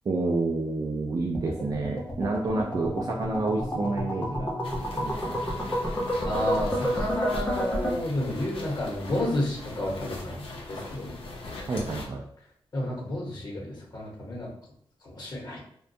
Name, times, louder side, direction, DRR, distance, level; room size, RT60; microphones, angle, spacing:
voice 1, 0.0-4.5 4.9-5.4 11.7-12.2, right 3 dB, 40° right, 0 dB, 0.4 m, -29 dB
sound 1, 1.3-7.9, equal, 15° left, 0.6 m, -30 dB
sound 2, 4.6-12.1, left 2 dB, 75° left, 0.6 m, -40 dB
voice 2, 6.2-11.1 12.7-14.5 15.0-15.6, left 1 dB, 45° left, -2 dB, 0.9 m, -31 dB
2.3 x 2.2 x 2.6 m, 0.68 s
cardioid pair, 85°, 9 cm